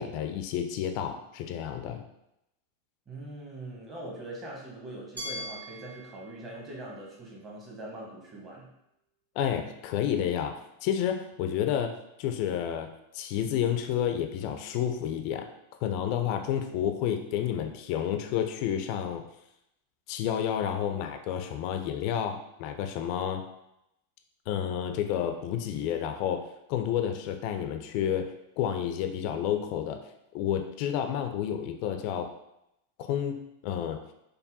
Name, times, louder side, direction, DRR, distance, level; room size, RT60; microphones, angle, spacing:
voice 1, 0.0-2.0 9.4-11.9 12.2-12.9 13.1-15.5 15.8-19.2 20.1-23.4 24.5-28.3 28.6-30.0 30.3-32.3 33.0-34.0, left 9 dB, 45° left, 6 dB, 0.3 m, -30 dB
voice 2, 3.1-8.7, right 1 dB, 25° right, -2 dB, 1.1 m, -42 dB
Glass, 5.2-8.1, equal, 80° right, 0.8 m, -43 dB
5.3 x 2.2 x 2.6 m, 0.84 s
figure-of-eight pair, 90°, 0 cm